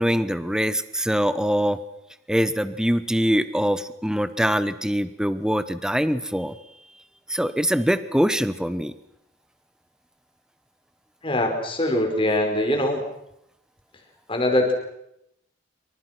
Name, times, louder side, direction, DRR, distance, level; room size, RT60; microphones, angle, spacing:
voice 1, 0.0-1.8 2.3-6.6 7.3-8.9, equal, 5° right, 13 dB, 1.0 m, -23 dB
voice 2, 11.2-13.0 14.3-14.7, left 1 dB, 25° left, 4 dB, 5.3 m, -22 dB
27.5 x 25.0 x 6.1 m, 0.79 s
head